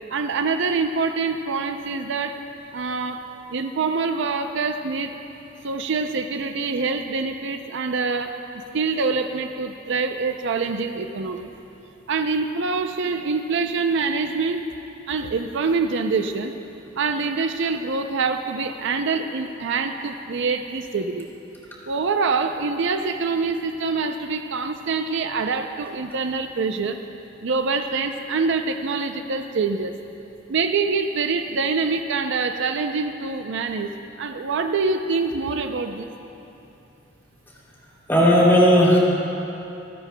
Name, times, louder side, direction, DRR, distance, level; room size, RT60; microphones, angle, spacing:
voice 1, 0.1-2.4 2.7-3.2 3.5-5.2 5.6-8.4 8.7-11.5 12.1-14.7 15.1-16.5 17.0-21.3 21.9-27.0 27.4-29.9 30.5-36.1, right 4 dB, 65° right, 7 dB, 0.5 m, -25 dB
voice 2, 38.1-39.0, equal, 10° left, -6 dB, 2.7 m, -15 dB
27.0 x 9.8 x 2.2 m, 2.9 s
head